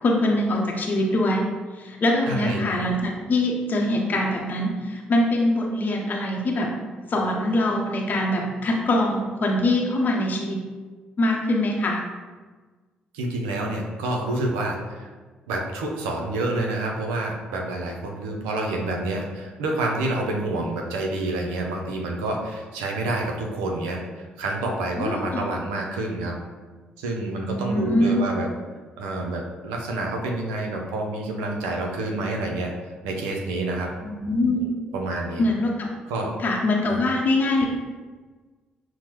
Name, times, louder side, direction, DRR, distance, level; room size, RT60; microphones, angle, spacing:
voice 1, 0.0-1.4 1.7-6.7 7.1-10.6 11.2-12.0 25.0-25.4 27.4-28.3 34.0-34.6 35.4-35.9 36.4-37.7, left 1 dB, 45° left, 0 dB, 0.7 m, -23 dB
voice 2, 2.3-2.6 13.1-15.0 15.5-24.0 24.4-26.4 27.0-28.5 29.0-32.7 33.0-33.9 34.6-34.7 34.9-35.4 36.1-36.3 36.9-37.0, right 2 dB, 80° right, 1 dB, 0.5 m, -28 dB
5.9 x 2.1 x 3.0 m, 1.4 s
hypercardioid pair, 45°, 4 cm